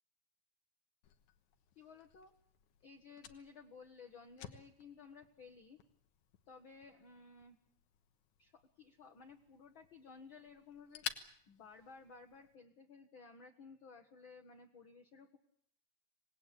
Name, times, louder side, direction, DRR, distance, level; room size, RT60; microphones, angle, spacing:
Fire, 1.0-12.6, left 10 dB, 85° left, 2.7 m, -53 dB
voice 1, 1.8-2.4 2.8-5.8 6.5-7.6 8.4-15.4, left 5 dB, 50° left, 4 dB, 1.8 m, -56 dB
26.0 x 19.5 x 8.5 m, 0.67 s
omnidirectional pair, 3.3 m